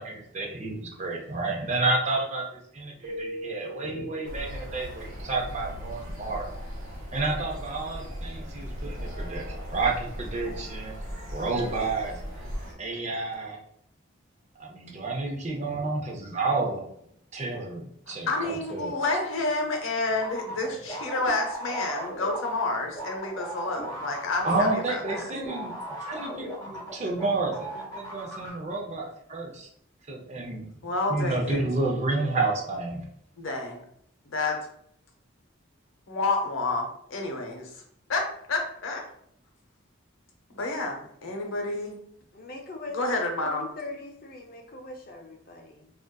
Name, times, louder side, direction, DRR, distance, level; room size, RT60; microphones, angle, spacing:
voice 1, 0.0-2.4 2.7-6.5 7.1-10.9 11.3-12.1 12.8-13.6 14.6-16.9 17.3-18.9 24.4-25.7 26.1-29.7 30.1-30.6 31.1-33.0, right 3 dB, 35° right, 0 dB, 0.5 m, -30 dB
Keyboard (musical), 3.0-5.0, equal, 60° right, 1.1 m, -39 dB
sound 1, 4.2-12.7, equal, 90° right, 0.9 m, -38 dB
voice 2, 18.3-25.3 30.8-31.6 33.4-33.8 34.3-34.7 36.1-37.7 38.1-39.0 40.6-42.0 42.9-43.6, left 2 dB, 80° left, 3 dB, 0.7 m, -29 dB
sound 2, 20.2-27.3 27.5-28.5, equal, 15° left, 0.8 m, -37 dB
voice 3, 42.3-43.2 43.4-45.9, left 2 dB, 45° left, 3 dB, 0.4 m, -41 dB
3.7 x 2.4 x 2.2 m, 0.70 s
head